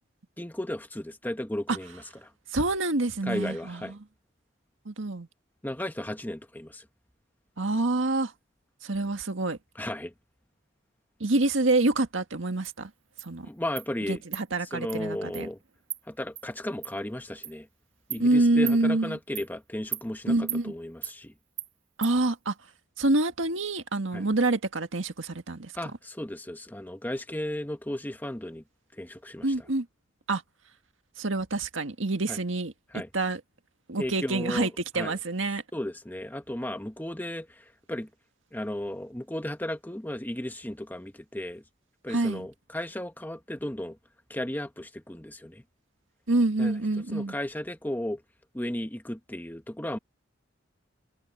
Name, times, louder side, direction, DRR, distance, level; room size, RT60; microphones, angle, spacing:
voice 1, 0.4-2.0 3.2-3.9 5.6-6.8 9.7-10.1 13.4-14.2 14.7-15.6 16.1-17.7 18.1-21.3 24.1-24.2 25.7-28.6 28.9-29.5 32.3-32.4 32.9-33.1 34.0-35.2 35.7-38.1 38.5-41.6 42.0-44.0 44.3-45.6 46.6-46.7 47.1-48.2 48.5-50.0, left 1 dB, 10° left, 1.4 m, -35 dB
voice 2, 2.5-4.0 4.9-5.3 7.6-8.3 8.8-9.6 11.2-12.9 13.2-13.5 14.1-15.5 18.2-19.2 20.3-20.7 22.0-22.5 23.0-25.7 29.4-29.9 30.3-30.4 31.2-32.7 33.1-33.4 33.9-35.6 42.1-42.5 46.3-47.3, right 2 dB, 90° right, 1.8 m, -26 dB
Insect, 12.6-12.7 13.2-13.3 13.8-13.9 14.3-14.4 14.9-15.0 15.3-15.4 15.9-16.0 16.4-16.5 16.8-16.9 17.4-17.5 18.1-18.2 18.7-18.8 19.4-19.5 19.9-20.0 20.5-20.6 21.0-21.1 21.6-21.7 22.0-22.1, right 11 dB, 35° right, 3.3 m, -36 dB
head